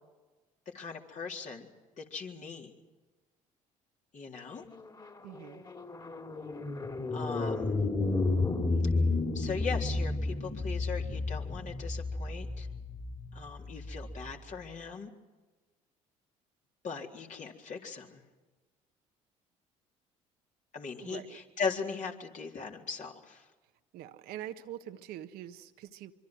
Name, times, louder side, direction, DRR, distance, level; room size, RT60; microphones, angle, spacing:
voice 1, 0.7-1.7 2.0-2.7 4.1-4.6 7.1-7.8 9.3-12.7 13.3-15.1 16.8-18.2 20.7-23.4, left 5 dB, 50° left, 0 dB, 3.9 m, -39 dB
sound 1, 4.6-14.2, left 3 dB, 25° left, 3.7 m, -32 dB
voice 2, 5.2-5.6 21.0-21.4 23.9-26.1, right 11 dB, 70° right, 8 dB, 1.4 m, -44 dB
25.0 x 24.5 x 6.3 m, 1.2 s
hypercardioid pair, 60°, 17 cm